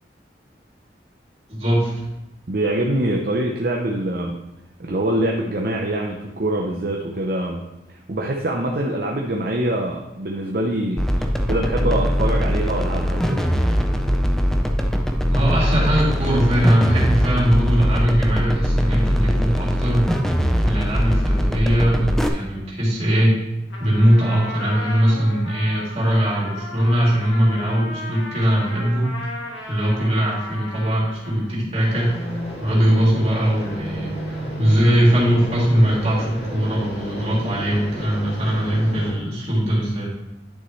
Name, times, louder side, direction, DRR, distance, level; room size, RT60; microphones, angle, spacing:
voice 1, 1.5-1.9 15.3-20.1 20.6-23.4 23.8-29.1 29.7-32.1 32.6-34.1 34.6-40.1, equal, 35° right, -6 dB, 3.0 m, -20 dB
voice 2, 2.5-4.4 4.8-7.6 8.1-11.0 11.5-13.5, right 1 dB, 55° right, 0 dB, 0.7 m, -24 dB
sound 1, 11.0-22.3, equal, ahead, 0.5 m, -21 dB
Trumpet, 23.7-31.5, left 1 dB, 90° left, 1.7 m, -35 dB
sound 2, 31.7-39.1, equal, 65° left, 2.2 m, -32 dB
10.5 x 6.1 x 3.2 m, 0.95 s
head